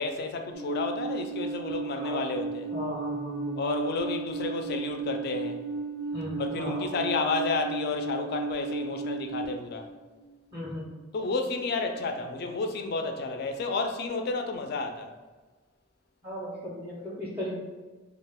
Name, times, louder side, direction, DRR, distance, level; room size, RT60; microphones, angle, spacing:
voice 1, 0.0-2.7 3.6-5.6 6.4-9.9 11.1-15.1, left 3 dB, 55° left, 0.3 m, -31 dB
Alarm, 0.5-9.4, right 4 dB, 80° right, 0.4 m, -34 dB
voice 2, 2.7-3.6 6.1-7.0 10.5-10.9 16.2-17.5, left 1 dB, 10° right, 0.5 m, -36 dB
2.4 x 2.2 x 3.4 m
head